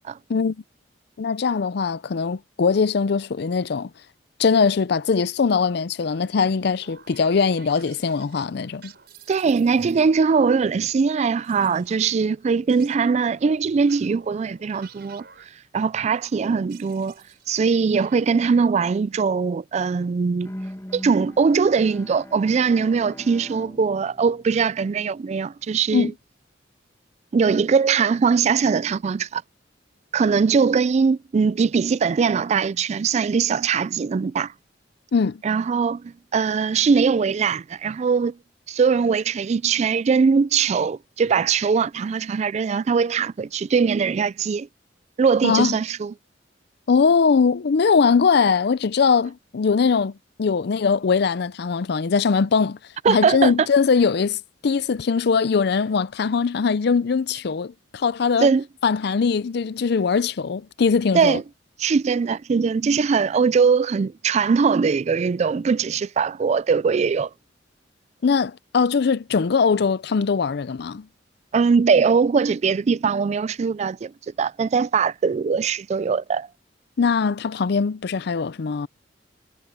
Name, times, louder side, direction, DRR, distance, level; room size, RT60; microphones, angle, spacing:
voice 1, 1.2-3.9 4.4-8.9 25.9-26.1 35.1-35.4 45.4-45.8 46.9-50.1 50.4-52.8 53.1-58.5 58.8-61.4 68.2-71.1 77.0-78.9, left 5 dB, 60° left, 0.5 m, -21 dB
sound 1, 6.0-10.4 11.4-17.7 17.9-18.5, right 7 dB, 60° right, 5.4 m, -52 dB
voice 2, 9.3-17.1 17.5-20.5 20.9-26.1 27.3-29.4 30.1-34.5 35.4-38.4 38.7-44.7 45.2-46.1 53.0-53.6 58.4-58.6 61.1-61.4 61.8-67.3 71.5-74.1 74.4-76.5, right 5 dB, 40° right, 0.3 m, -21 dB
Bowed string instrument, 20.4-25.5, equal, 15° left, 1.9 m, -41 dB
head